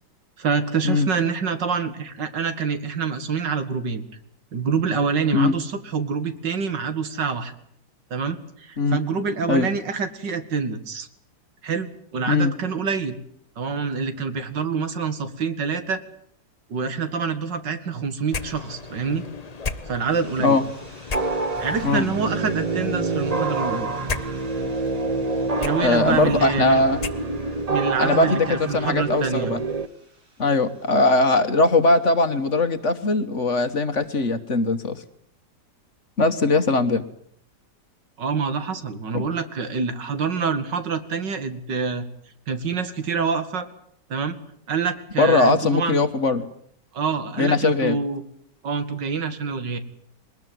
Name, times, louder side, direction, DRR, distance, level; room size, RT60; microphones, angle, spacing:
voice 1, 0.4-4.1 4.5-7.5 8.1-11.1 11.6-13.2 13.6-16.0 16.7-19.3 19.9-20.6 21.6-24.0 25.6-26.8 27.7-29.5 38.2-42.1 42.5-43.7 44.1-44.4 44.7-46.0 46.9-48.2 48.6-49.8, right 5 dB, 80° right, 10 dB, 2.5 m, -26 dB
sound 1, 18.3-27.7, left 4 dB, 30° left, 0.8 m, -36 dB
sound 2, 20.1-33.4, right 1 dB, 60° right, 5.6 m, -53 dB
sound 3, 21.1-29.9, right 3 dB, 25° right, 0.9 m, -27 dB
voice 2, 25.8-27.0 28.0-29.6 30.4-35.0 36.2-37.0 45.2-46.5 47.4-48.0, left 3 dB, 45° left, 9 dB, 1.5 m, -20 dB
21.5 x 20.0 x 9.3 m, 0.66 s
omnidirectional pair, 1.9 m